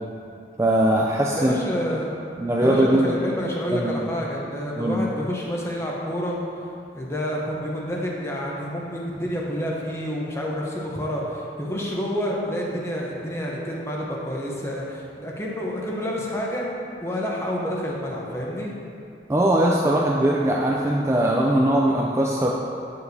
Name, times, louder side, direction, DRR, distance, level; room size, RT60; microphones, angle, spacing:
voice 1, 0.6-1.6 2.4-3.1 3.7-4.0 4.8-5.0 19.3-22.5, right 1 dB, 15° right, -3 dB, 0.3 m, -20 dB
voice 2, 1.4-2.1 2.6-16.7 17.0-18.7, equal, 15° left, -3 dB, 0.8 m, -28 dB
8.7 x 6.7 x 2.7 m, 2.6 s
head